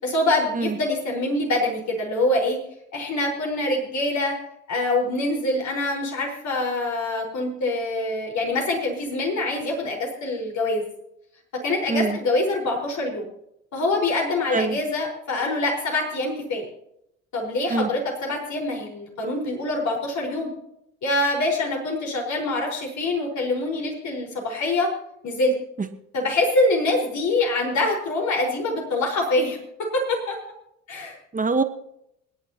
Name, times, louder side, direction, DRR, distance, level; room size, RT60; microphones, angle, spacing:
voice 1, 0.0-2.6 2.9-4.3 4.7-10.8 11.6-13.3 13.7-16.7 17.3-20.5 21.0-24.9 25.2-25.5 26.1-29.6 29.9-30.4 30.9-31.2, left 2 dB, 50° left, 0 dB, 4.9 m, -25 dB
voice 2, 31.3-31.6, right 4 dB, 20° right, 9 dB, 1.3 m, -23 dB
27.5 x 9.8 x 2.9 m, 0.79 s
hypercardioid pair, 55°, 36 cm